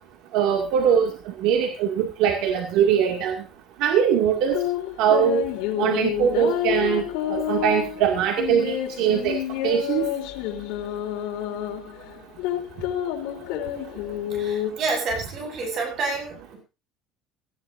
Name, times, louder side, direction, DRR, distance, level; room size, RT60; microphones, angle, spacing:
voice 1, 0.3-3.4 3.8-4.6 5.0-5.5 5.8-9.4 9.6-10.0, right 8 dB, 70° right, 2 dB, 2.1 m, -22 dB
sound 1, 4.3-14.7, left 11 dB, 85° left, 3.5 m, -29 dB
voice 2, 14.3-16.6, right 3 dB, 40° right, 2 dB, 7.4 m, -29 dB
18.5 x 15.0 x 2.6 m, 0.31 s
cardioid pair, 165°, 0 cm